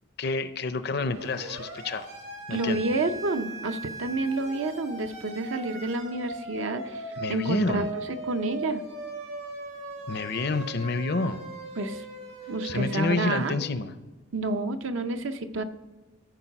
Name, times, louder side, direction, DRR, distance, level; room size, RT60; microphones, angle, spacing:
voice 1, 0.2-2.1 2.5-2.8 7.2-7.9 10.1-11.4 12.6-13.9, left 3 dB, 50° left, 12 dB, 0.5 m, -28 dB
Siren, 1.1-13.5, right 2 dB, 90° right, 2.9 m, -39 dB
voice 2, 2.5-7.9 8.2-8.8 11.8-12.0 12.5-13.5 14.3-15.6, right 2 dB, 70° right, 8 dB, 0.7 m, -29 dB
14.0 x 4.7 x 5.8 m, 1.2 s
head